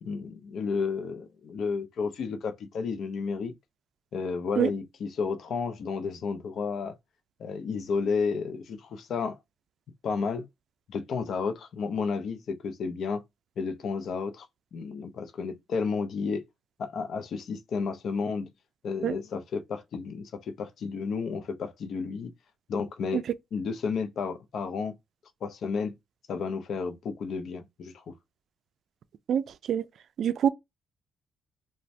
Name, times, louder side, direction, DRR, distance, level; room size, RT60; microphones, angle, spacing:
voice 1, 0.0-3.5 4.1-7.0 7.4-9.4 10.0-10.5 10.9-13.2 13.6-14.5 14.7-16.4 16.8-18.5 18.8-22.3 22.7-23.2 23.5-25.0 25.4-25.9 26.3-28.1, left 5 dB, 65° left, 0.5 m, -32 dB
voice 2, 29.3-29.8 30.2-30.5, right 9 dB, 65° right, 0.3 m, -25 dB
2.6 x 2.1 x 3.1 m
cardioid pair, 90°, 0 cm